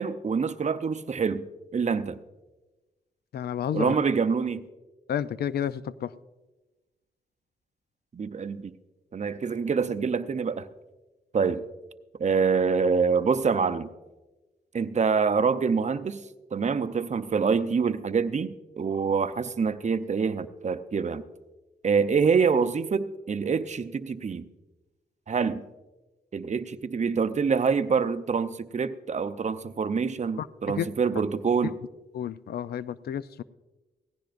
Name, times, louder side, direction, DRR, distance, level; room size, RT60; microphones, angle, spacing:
voice 1, 0.0-1.5 1.7-2.2 3.7-4.6 8.1-8.8 9.1-10.7 11.3-11.6 12.2-13.9 14.7-16.2 16.5-21.2 21.8-24.5 25.3-25.6 26.3-31.8, right 5 dB, 45° right, 11 dB, 0.7 m, -26 dB
voice 2, 3.3-4.0 5.1-6.1 30.4-30.5 30.8-30.9 32.1-33.4, left 9 dB, 80° left, 16 dB, 0.4 m, -30 dB
17.5 x 15.5 x 2.5 m, 1.1 s
cardioid pair, 65°, 16 cm